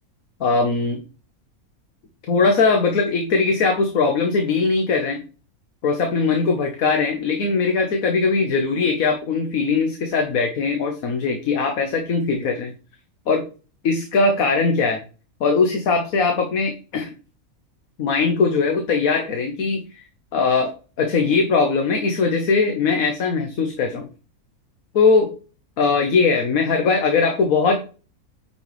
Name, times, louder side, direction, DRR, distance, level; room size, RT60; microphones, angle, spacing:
voice 1, 0.4-1.0 2.3-5.2 5.8-12.7 13.3-13.4 13.8-15.0 15.4-17.1 18.0-20.0 20.3-20.7 21.0-24.1 24.9-25.3 25.8-27.8, left 4 dB, 70° left, 4 dB, 1.4 m, -20 dB
8.8 x 5.8 x 3.1 m, 0.36 s
omnidirectional pair, 1.5 m